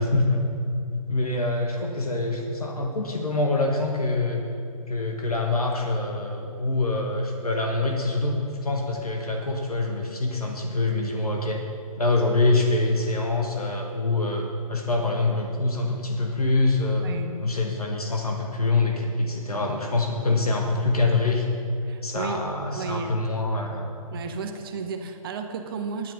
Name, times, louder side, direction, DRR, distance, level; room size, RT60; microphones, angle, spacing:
voice 1, 0.0-4.4 4.9-11.6 12.0-17.1 17.4-21.5 22.0-23.9, left 2 dB, 80° left, 1 dB, 1.4 m, -25 dB
voice 2, 17.0-17.4 21.9-22.4 22.7-23.1 24.1-26.1, right 5 dB, 40° right, 6 dB, 0.9 m, -33 dB
10.5 x 9.6 x 5.2 m, 2.5 s
figure-of-eight pair, 130°, 19 cm